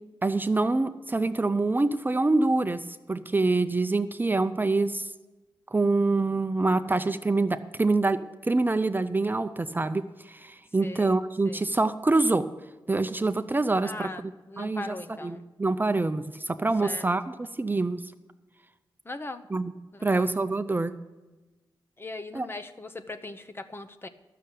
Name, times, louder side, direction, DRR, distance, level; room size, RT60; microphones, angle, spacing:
voice 1, 0.2-5.1 5.7-12.5 12.9-14.1 14.6-14.9 15.2-18.0 19.5-19.7 20.0-21.0 22.3-22.5, right 3 dB, 25° right, 10 dB, 0.5 m, -25 dB
voice 2, 10.8-11.6 13.8-15.4 16.8-17.1 19.0-19.4 19.9-20.3 22.0-24.1, left 2 dB, 30° left, 9 dB, 0.8 m, -40 dB
12.0 x 6.7 x 8.3 m, 1.2 s
cardioid pair, 75°, 8 cm